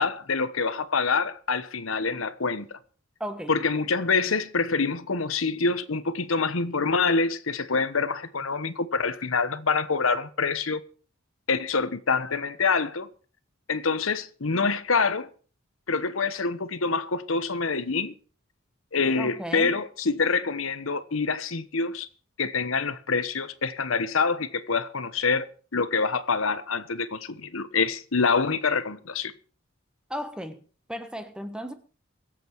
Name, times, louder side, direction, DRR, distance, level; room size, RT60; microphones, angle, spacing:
voice 1, 0.0-2.8 3.5-10.8 11.5-13.1 13.7-15.3 15.9-18.1 18.9-22.1 22.4-25.5 25.7-29.3, left 4 dB, 75° left, 1.1 m, -26 dB
voice 2, 3.2-3.6 19.2-19.8 30.1-30.6 30.9-31.7, equal, 5° right, 1.3 m, -35 dB
23.5 x 7.8 x 4.6 m
head